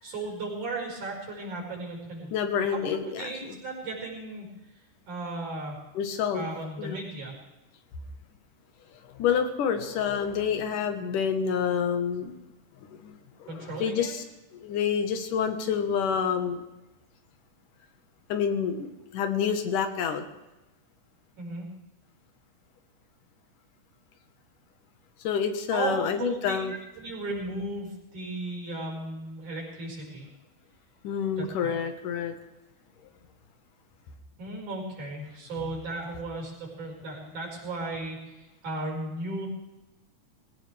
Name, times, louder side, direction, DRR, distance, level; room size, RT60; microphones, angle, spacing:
voice 1, 0.0-2.3 2.6-4.5 5.1-5.8 6.3-7.4 13.5-14.1 21.4-21.7 25.7-30.3 31.4-31.8 34.4-39.5, right 2 dB, 70° right, -1 dB, 6.6 m, -35 dB
voice 2, 2.3-3.6 5.9-6.5 6.8-7.0 9.1-12.4 12.9-14.2 14.5-16.6 18.3-20.2 25.2-26.8 31.0-32.3 35.6-35.8, left 7 dB, 85° left, 6 dB, 3.0 m, -28 dB
22.5 x 17.0 x 3.5 m, 1.0 s
omnidirectional pair, 3.6 m